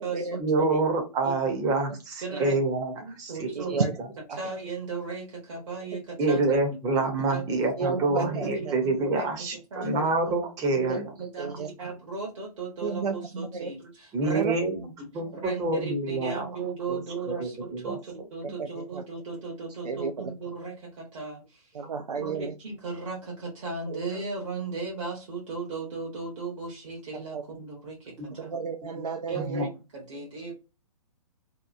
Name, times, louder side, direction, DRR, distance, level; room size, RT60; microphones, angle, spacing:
voice 1, 0.4-3.5 6.2-11.0 14.1-16.5 16.9-17.0 17.3-18.0 28.2-28.3 29.3-29.7, right 2 dB, 20° right, 3 dB, 0.7 m, -27 dB
voice 2, 1.2-1.7 2.2-2.6 3.0-3.9 4.3-6.5 7.3-7.4 8.2-9.3 9.7-10.1 10.7-10.9 11.2-14.4 15.3-21.7 22.2-28.5 29.3-30.5, right 4 dB, 50° right, -3 dB, 1.0 m, -36 dB
voice 3, 3.6-3.9 4.3-4.4 6.5-6.6 7.8-8.7 10.9-11.0 11.4-11.7 12.8-13.7 14.3-14.6 18.4-19.0 19.8-20.3 21.7-22.5 27.1-27.4 28.4-29.6, right 4 dB, 80° right, 3 dB, 0.4 m, -32 dB
2.8 x 2.1 x 2.4 m, 0.29 s
figure-of-eight pair, 125°, 20 cm